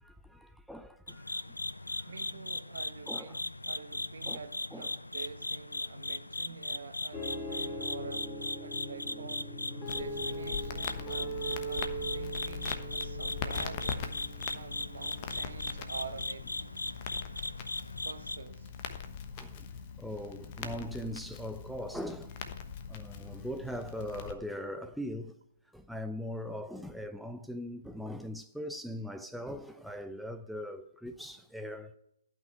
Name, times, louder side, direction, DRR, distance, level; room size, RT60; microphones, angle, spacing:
voice 1, 0.0-1.6 1.8-2.0 3.1-3.4 4.3-4.4 4.7-4.9 19.4-19.7 20.0-22.4 22.9-25.4 25.7-32.0, equal, ahead, 0.4 m, -40 dB
sound 1, 1.1-18.4, left 2 dB, 85° left, 0.5 m, -38 dB
voice 2, 2.1-8.3 8.6-9.4 9.9-11.4 11.7-14.0 14.5-17.0 18.0-18.7, right 5 dB, 60° right, 1.1 m, -47 dB
sound 2, 7.1-15.9, right 2 dB, 15° left, 2.2 m, -41 dB
Crackle, 9.9-24.3, left 6 dB, 35° left, 1.1 m, -42 dB
12.0 x 6.0 x 8.8 m
figure-of-eight pair, 130°, 0 cm